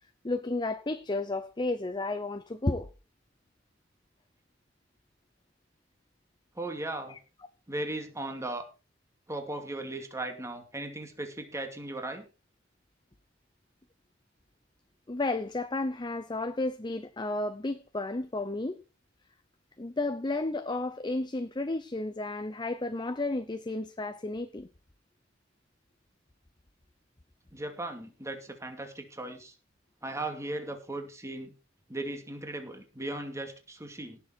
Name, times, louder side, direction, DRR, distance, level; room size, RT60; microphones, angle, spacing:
voice 1, 0.2-2.9 7.1-7.2 15.1-18.8 19.8-24.7, left 2 dB, 25° left, 0.7 m, -32 dB
voice 2, 6.6-7.2 7.7-8.6 9.3-12.3 27.5-29.5 30.0-31.5 31.9-34.2, right 2 dB, 15° right, 2.4 m, -37 dB
17.5 x 7.0 x 4.5 m
head